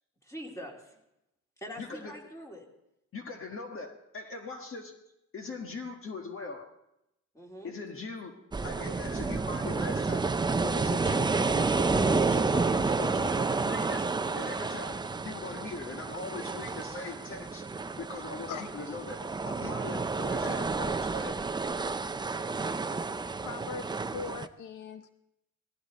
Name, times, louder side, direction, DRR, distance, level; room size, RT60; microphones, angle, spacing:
voice 1, 0.2-1.0 1.6-2.7 7.3-7.7, equal, 10° left, 0 dB, 2.9 m, -43 dB
voice 2, 1.8-2.2 3.1-4.9 5.3-6.7 7.6-8.3 8.6-10.3 10.6-14.1 14.3-17.7 18.0-21.4, left 3 dB, 45° left, 4 dB, 1.7 m, -41 dB
sound 1, 8.5-24.5, right 4 dB, 15° right, 0.5 m, -30 dB
voice 3, 23.4-25.1, left 6 dB, 75° left, 10 dB, 0.8 m, -40 dB
18.5 x 15.0 x 4.2 m, 0.86 s
cardioid pair, 115°, 31 cm